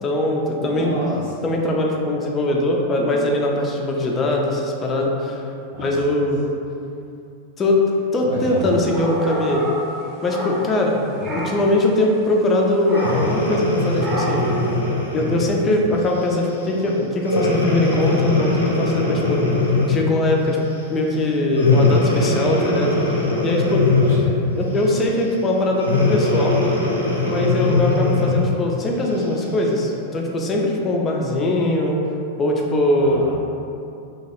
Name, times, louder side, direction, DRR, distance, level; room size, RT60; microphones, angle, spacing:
voice 1, 0.0-1.0 1.4-5.4 5.8-6.4 7.6-7.8 8.1-9.7 10.2-14.4 15.1-19.4 19.9-20.6 20.9-22.9 23.4-23.8 24.6-26.6 27.3-32.0 32.4-33.3, left 1 dB, 25° left, -1 dB, 0.4 m, -21 dB
voice 2, 0.6-1.3 5.7-6.1 8.2-8.7 11.2-11.3 15.8-15.9 24.0-24.5 33.0-33.3, right 1 dB, 65° right, -11 dB, 0.7 m, -30 dB
sound 1, 8.5-10.9 11.2-11.7 12.9-13.4 14.0-14.6, right 1 dB, 20° right, 0.6 m, -29 dB
Breathing, 12.9-15.6 16.2-16.4 17.2-20.1 21.5-24.4 25.8-28.5 29.2-29.3, left 2 dB, 85° left, 0.5 m, -20 dB
2.9 x 2.3 x 2.8 m, 2.7 s
figure-of-eight pair, 90°, 0 cm